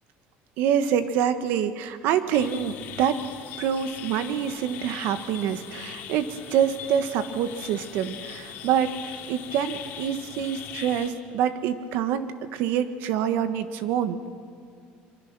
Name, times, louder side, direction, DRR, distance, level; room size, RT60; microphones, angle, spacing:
voice 1, 0.6-3.2 3.6-14.2, right 9 dB, 65° right, 10 dB, 1.4 m, -26 dB
sound 1, 2.3-11.1, left 9 dB, 55° left, 2.5 m, -40 dB
25.0 x 23.5 x 6.1 m, 2.1 s
cardioid pair, 160°, 4 cm